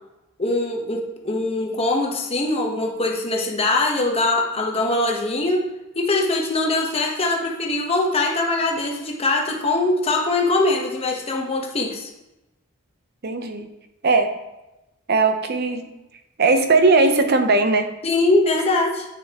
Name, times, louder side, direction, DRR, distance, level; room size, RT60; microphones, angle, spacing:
voice 1, 0.4-5.6 6.0-12.1 18.0-19.1, left 2 dB, 25° left, 0 dB, 1.0 m, -22 dB
voice 2, 13.2-13.7 14.0-14.3 15.1-15.8 16.4-17.9, right 3 dB, 45° right, 7 dB, 0.7 m, -18 dB
8.8 x 6.3 x 2.9 m, 0.97 s
head